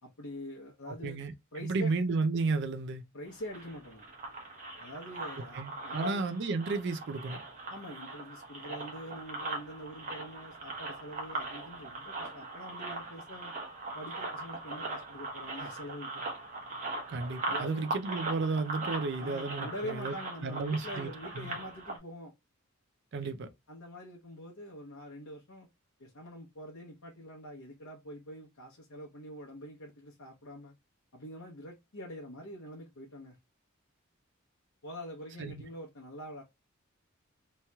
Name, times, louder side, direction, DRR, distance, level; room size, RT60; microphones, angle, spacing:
voice 1, 0.0-1.2 1.5-1.9 3.1-4.1 4.8-6.3 7.7-13.5 13.9-16.3 17.5-17.9 19.2-22.3 23.2-23.3 23.7-25.7 26.0-30.7 31.1-33.4 34.8-36.4, equal, 85° left, 0.8 m, -44 dB
voice 2, 0.8-1.3 1.6-3.0 5.5-7.4 17.1-20.1 20.4-21.6 23.1-23.5 35.4-35.6, right 3 dB, 60° right, 0.4 m, -33 dB
sound 1, 3.3-22.0, right 2 dB, 40° right, 1.1 m, -40 dB
3.1 x 2.8 x 2.2 m
head